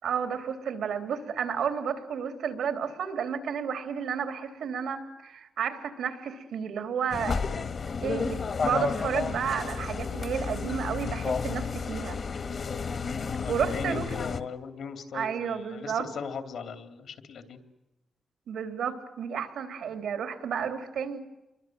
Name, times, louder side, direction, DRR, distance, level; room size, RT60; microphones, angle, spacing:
voice 1, 0.0-7.4 8.0-12.2 13.5-14.1 15.1-16.1 18.5-21.2, right 7 dB, 85° right, 7 dB, 3.5 m, -31 dB
sound 1, 7.1-14.4, left 5 dB, 45° left, 1.5 m, -31 dB
voice 2, 13.4-17.6, left 6 dB, 75° left, 8 dB, 3.2 m, -38 dB
29.0 x 23.5 x 7.8 m, 1.0 s
wide cardioid pair, 145°, 0 cm